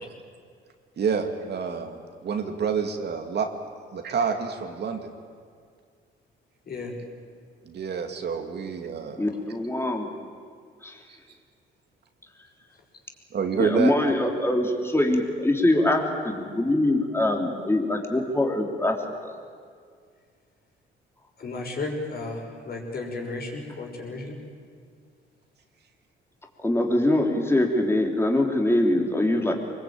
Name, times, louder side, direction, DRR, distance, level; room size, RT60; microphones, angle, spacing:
voice 1, 1.0-3.5 3.9-5.1 7.6-9.2 11.1-11.2 13.3-13.9, right 6 dB, 55° right, 4 dB, 2.4 m, -28 dB
voice 2, 9.2-10.1 10.8-11.0 13.6-19.0 19.2-19.3 26.6-29.5, left 1 dB, 10° left, 1 dB, 3.4 m, -23 dB
voice 3, 21.4-24.4, left 3 dB, 50° left, 0 dB, 6.1 m, -33 dB
24.0 x 21.5 x 8.9 m, 2.1 s
cardioid pair, 90°, 20 cm